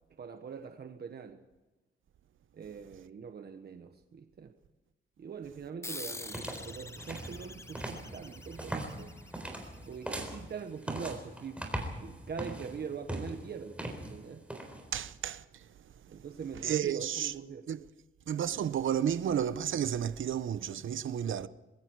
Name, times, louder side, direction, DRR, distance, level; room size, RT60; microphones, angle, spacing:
voice 1, 0.1-1.4 2.5-4.5 5.2-9.1 9.8-11.7 12.0-14.4 16.1-17.7, right 6 dB, 50° right, 1.2 m, -43 dB
sound 1, 5.8-10.8, left 2 dB, 15° left, 0.7 m, -46 dB
sound 2, 6.1-15.1, right 1 dB, 5° right, 3.9 m, -41 dB
voice 2, 14.9-15.7 16.1-16.2 16.6-17.3 17.7-17.8 18.3-21.5, right 9 dB, 75° right, 0.8 m, -32 dB
26.5 x 21.5 x 4.7 m
wide cardioid pair, 165°, 20 cm